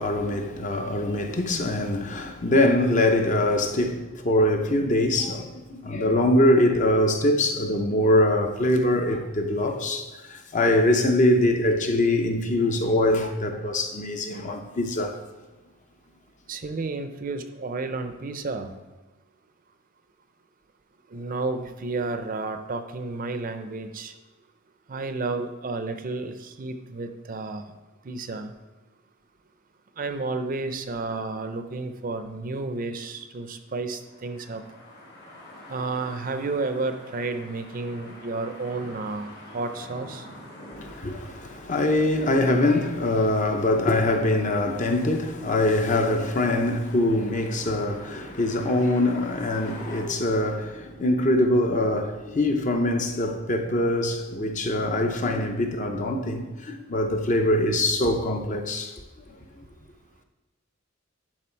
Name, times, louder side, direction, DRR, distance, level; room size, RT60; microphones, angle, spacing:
voice 1, 0.0-15.2 40.8-58.9, left 1 dB, 35° left, 0.7 m, -23 dB
voice 2, 16.5-18.7 21.1-24.1 24.9-27.7 28.1-28.5 30.0-34.6 35.7-40.3, right 3 dB, 40° right, 0.5 m, -31 dB
sound 1, 33.9-50.0, left 1 dB, 55° left, 2.0 m, -46 dB
11.0 x 3.9 x 4.5 m
head